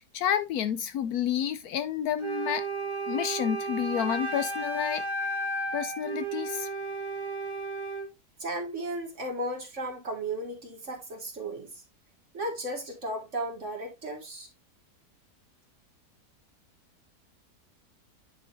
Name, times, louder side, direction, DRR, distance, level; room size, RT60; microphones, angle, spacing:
voice 1, 0.0-2.6 3.1-5.0 5.7-6.7, left 9 dB, 75° left, 1.0 m, -30 dB
Wind instrument woodwind instrument, 2.2-8.1, right 2 dB, 20° right, 1.2 m, -33 dB
voice 2, 8.4-11.7 12.3-14.5, right 1 dB, 45° right, 2.2 m, -35 dB
9.9 x 5.0 x 2.6 m
omnidirectional pair, 1.7 m